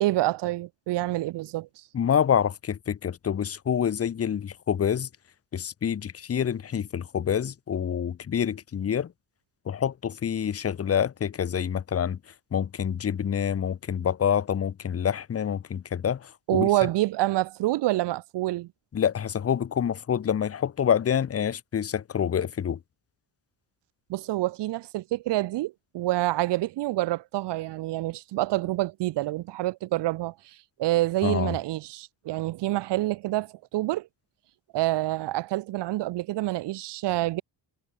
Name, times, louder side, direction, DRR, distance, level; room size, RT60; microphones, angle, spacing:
voice 1, 0.0-1.8 16.5-18.7 24.1-30.3 30.8-34.1 34.7-37.4, right 17 dB, 65° right, 0.5 m, -27 dB
voice 2, 1.9-5.1 5.5-9.1 9.7-12.2 12.5-16.7 18.9-22.8 31.2-31.5, left 8 dB, 30° left, 0.8 m, -27 dB
wide cardioid pair, 155°, 46 cm